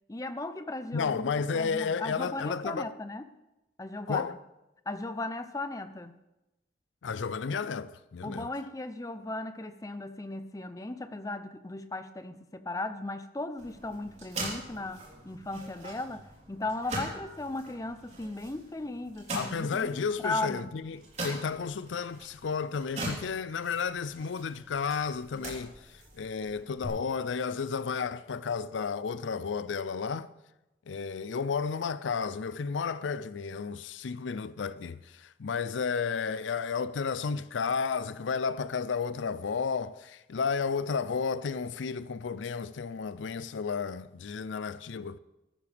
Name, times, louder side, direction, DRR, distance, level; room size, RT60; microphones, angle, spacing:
voice 1, 0.1-3.3 3.8-4.3 4.9-6.2 8.2-20.7, left 2 dB, 20° left, 0.5 m, -37 dB
voice 2, 0.9-2.9 4.1-4.3 7.0-8.5 19.3-30.3 30.9-45.2, left 5 dB, 90° left, 0.5 m, -32 dB
sound 1, 13.6-26.9, right 1 dB, 35° right, 3.6 m, -42 dB
15.5 x 13.5 x 3.4 m
head